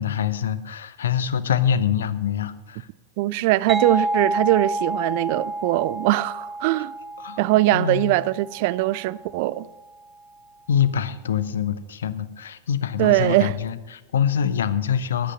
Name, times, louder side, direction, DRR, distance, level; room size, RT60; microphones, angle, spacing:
voice 1, 0.0-2.9 7.2-7.4 7.7-8.1 10.7-15.3, left 8 dB, 65° left, 0.8 m, -24 dB
voice 2, 3.2-6.9 7.4-9.7 13.0-13.5, right 17 dB, 50° right, 0.4 m, -21 dB
sound 1, 3.7-9.2, right 1 dB, 15° right, 0.8 m, -29 dB
11.5 x 11.0 x 5.5 m
figure-of-eight pair, 90°, 0 cm